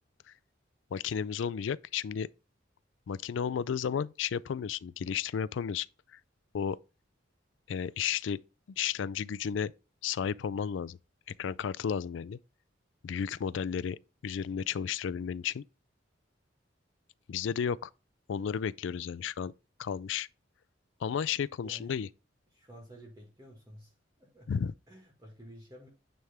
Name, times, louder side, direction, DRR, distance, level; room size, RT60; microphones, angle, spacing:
voice 1, 0.9-2.3 3.1-5.9 6.1-6.2 6.5-6.8 7.7-8.4 8.8-9.7 10.0-11.0 11.4-12.4 13.0-14.0 14.2-15.6 17.3-17.9 18.3-19.5 19.8-20.3 21.0-22.1 24.5-24.7, left 7 dB, 70° left, 0.3 m, -33 dB
voice 2, 21.6-22.0 22.5-24.6 24.9-25.9, right 1 dB, 15° right, 1.7 m, -52 dB
9.3 x 3.4 x 3.5 m
head